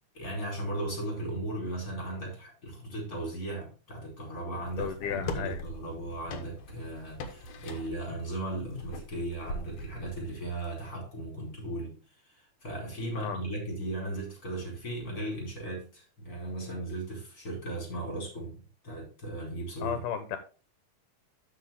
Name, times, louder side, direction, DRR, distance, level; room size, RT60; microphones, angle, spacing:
voice 1, 0.1-20.0, right 1 dB, 25° left, 0 dB, 4.6 m, -37 dB
sound 1, 4.6-10.9, left 1 dB, 65° left, 2.4 m, -42 dB
voice 2, 4.8-5.6 13.2-13.4 19.8-20.4, left 8 dB, 85° left, 9 dB, 2.5 m, -34 dB
13.0 x 5.1 x 3.6 m, 0.35 s
omnidirectional pair, 3.6 m